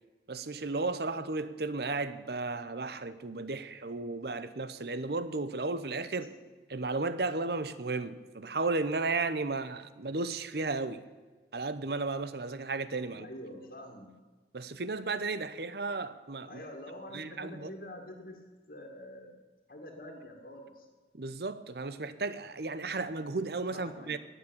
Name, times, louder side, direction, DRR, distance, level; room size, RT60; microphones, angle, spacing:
voice 1, 0.3-6.3 6.7-11.0 11.5-13.3 14.5-16.6 17.1-17.7 21.1-24.2, right 3 dB, 70° right, 0.8 m, -34 dB
voice 2, 13.1-14.1 16.4-18.4 18.7-19.4 19.7-20.9 23.7-24.1, left 1 dB, 55° left, 2.1 m, -46 dB
18.5 x 7.1 x 8.8 m
head